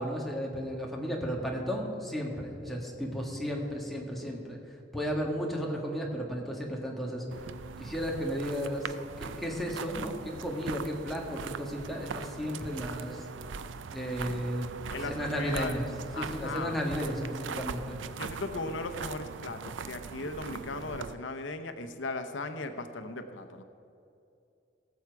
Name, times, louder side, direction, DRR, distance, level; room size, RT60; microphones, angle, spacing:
voice 1, 0.0-4.6 4.9-7.2 7.8-8.9 9.2-13.2 13.9-14.7 15.0-15.9 16.2-18.0, equal, ahead, -2 dB, 1.7 m, -34 dB
sound 1, 7.3-21.1, right 5 dB, 80° right, 0.5 m, -41 dB
voice 2, 14.9-15.8 16.1-16.8 18.2-23.6, left 3 dB, 90° left, 7 dB, 0.8 m, -37 dB
18.5 x 7.3 x 4.7 m, 2.7 s
head